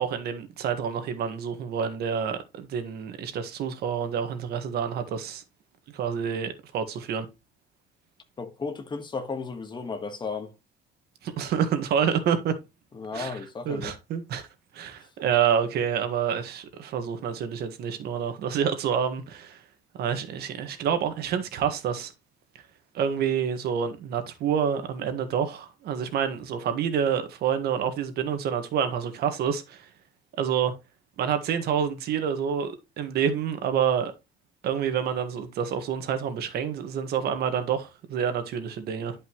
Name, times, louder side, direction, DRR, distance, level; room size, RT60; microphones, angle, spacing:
voice 1, 0.0-5.4 5.9-7.2 11.2-12.6 13.1-13.4 13.6-14.5 14.7-19.6 20.0-22.1 22.9-29.9 30.4-30.7 31.2-34.1 34.6-39.1, right 8 dB, 70° right, 1.6 m, -28 dB
voice 2, 8.4-10.5 12.9-13.9, left 4 dB, 25° left, 1.5 m, -34 dB
11.0 x 5.3 x 3.1 m
cardioid pair, 110°, 17 cm